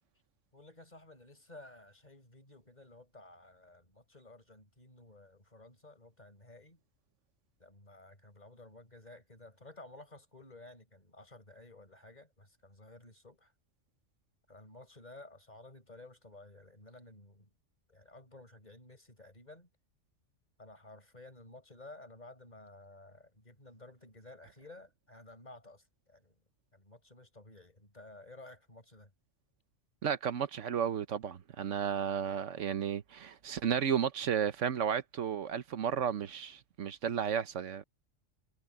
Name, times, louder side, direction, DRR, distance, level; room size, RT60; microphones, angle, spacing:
voice 1, 0.5-6.8 7.6-13.5 14.5-17.5 17.9-19.7 20.6-26.3 26.7-29.1, left 2 dB, 35° left, 5.7 m, -54 dB
voice 2, 30.0-37.8, right 8 dB, 80° right, 1.3 m, -33 dB
omnidirectional pair, 1.2 m